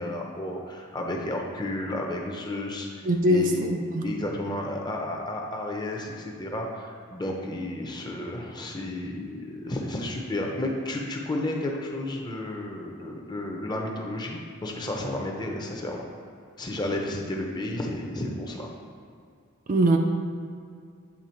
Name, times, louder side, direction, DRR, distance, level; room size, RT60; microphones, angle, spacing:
voice 1, 0.0-3.7 4.0-16.0 16.6-18.7, left 1 dB, 20° left, 0 dB, 0.7 m, -32 dB
voice 2, 3.0-4.1 19.7-20.0, right 1 dB, 40° right, 3 dB, 0.4 m, -22 dB
8.5 x 3.3 x 4.5 m, 2.3 s
head